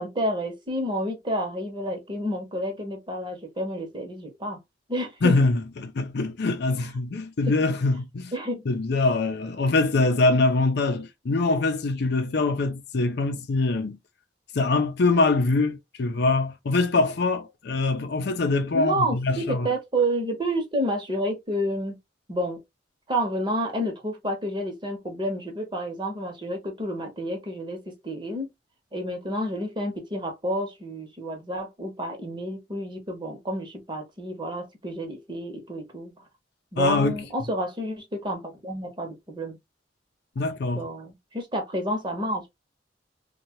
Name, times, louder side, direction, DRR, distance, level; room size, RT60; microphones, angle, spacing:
voice 1, 0.0-4.6 4.9-5.3 7.7-7.8 8.3-8.7 18.7-22.0 22.3-22.6 23.1-28.5 28.9-36.1 36.7-39.6 40.7-42.5, equal, 25° right, 0.9 m, -29 dB
voice 2, 5.2-8.3 8.7-14.0 14.5-19.7 36.8-37.2 40.4-40.9, left 3 dB, 65° left, 0.5 m, -23 dB
2.8 x 2.3 x 2.9 m
head